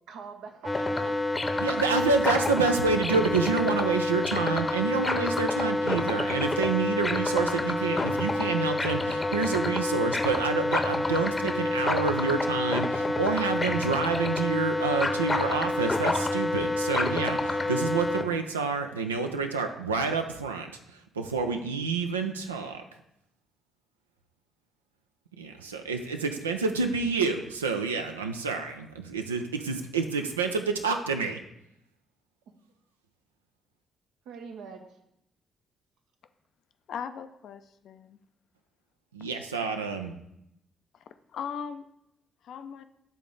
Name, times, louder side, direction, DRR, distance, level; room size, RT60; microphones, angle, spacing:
voice 1, 0.1-1.2 32.5-32.6 34.2-35.0, right 5 dB, 70° right, 5 dB, 0.7 m, -44 dB
sound 1, 0.6-18.2, left 2 dB, 30° left, 0.7 m, -28 dB
voice 2, 1.6-20.7 21.2-22.8 25.4-31.4 39.1-40.2, right 4 dB, 90° right, 5 dB, 0.4 m, -28 dB
voice 3, 36.9-38.2 41.3-41.9 42.4-42.8, left 7 dB, 60° left, 10 dB, 0.4 m, -38 dB
8.1 x 3.7 x 3.8 m, 0.79 s
hypercardioid pair, 40°, 0 cm